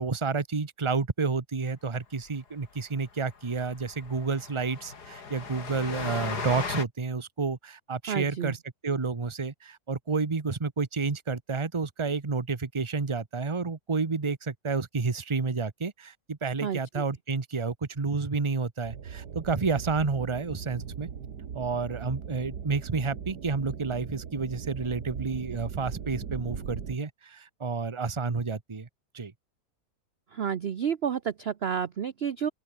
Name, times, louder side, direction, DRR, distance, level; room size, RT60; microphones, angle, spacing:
voice 1, 0.0-21.1 21.5-28.9 29.1-29.3, right 4 dB, 20° right, 1.1 m, -30 dB
Train, 2.3-2.4 2.6-2.8 3.0-3.1 3.5-6.8, left 5 dB, 80° left, 3.0 m, -37 dB
voice 2, 8.1-8.5 16.6-16.8 30.3-32.5, right 8 dB, 50° right, 0.9 m, -30 dB
sound 1, 18.8-27.0, right 7 dB, 85° right, 2.2 m, -39 dB
open air
omnidirectional pair, 1.7 m